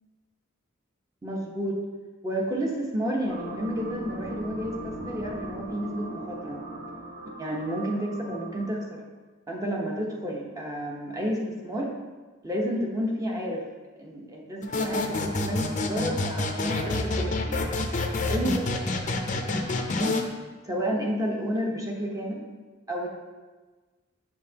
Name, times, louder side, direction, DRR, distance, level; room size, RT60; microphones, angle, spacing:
voice 1, 1.2-1.8 2.2-6.6 7.4-9.0 9.5-11.9 12.4-13.7 14.0-17.6 18.3-19.4 19.8-20.2 20.6-22.4 22.9-23.1, equal, 15° right, -2 dB, 1.0 m, -31 dB
sound 1, 3.3-8.9, right 1 dB, 50° right, 1.1 m, -39 dB
sound 2, 14.6-20.2, left 2 dB, 35° left, 0.6 m, -28 dB
7.4 x 5.8 x 2.8 m, 1.3 s
head